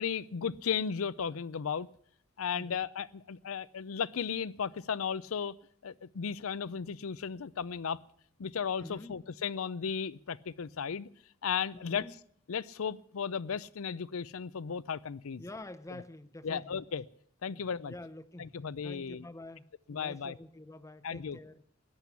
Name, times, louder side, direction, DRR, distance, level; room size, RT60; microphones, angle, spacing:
voice 1, 0.0-1.9 2.4-5.5 5.8-8.0 8.4-11.1 11.4-12.1 12.5-15.4 16.4-17.0 17.4-17.9 18.4-19.2 19.9-20.4 21.0-21.4, left 7 dB, 80° left, 19 dB, 0.5 m, -35 dB
voice 2, 8.8-9.2 11.7-12.2 15.4-16.8 17.5-21.6, left 1 dB, 15° left, 13 dB, 0.6 m, -47 dB
14.5 x 10.0 x 8.2 m, 0.64 s
head